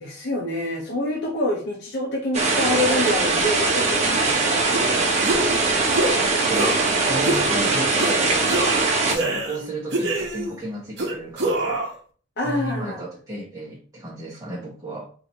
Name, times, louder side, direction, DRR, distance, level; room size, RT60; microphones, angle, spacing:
voice 1, 0.0-5.0 9.0-9.4 12.4-13.0, left 1 dB, 60° left, -1 dB, 0.8 m, -27 dB
sound 1, 2.3-9.1, right 3 dB, 35° right, 0.8 m, -21 dB
sound 2, 4.7-4.9 5.2-5.6 5.9-6.2 6.5-6.9 7.2-7.5 8.0-8.2 8.5-9.6 9.9-10.5 11.0-11.9, right 1 dB, 60° right, 1.0 m, -25 dB
voice 2, 7.0-8.7 9.0-11.8 12.4-15.0, right 1 dB, 20° right, -8 dB, 1.3 m, -33 dB
5.2 x 2.8 x 2.8 m, 0.42 s
head